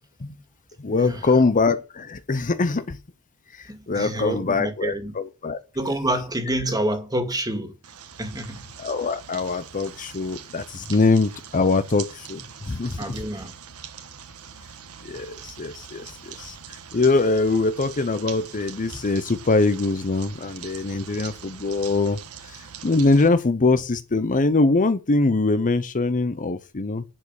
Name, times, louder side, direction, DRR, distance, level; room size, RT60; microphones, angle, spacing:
voice 1, 0.8-3.0 3.5-5.6 8.8-13.2 15.0-27.0, left 3 dB, 35° left, 0.7 m, -23 dB
voice 2, 3.7-5.1 5.7-7.8 8.2-9.0 13.0-13.5, right 1 dB, 15° right, 2.2 m, -28 dB
sound 1, 7.8-23.3, right 8 dB, 75° right, 1.4 m, -42 dB
11.0 x 5.1 x 8.2 m
head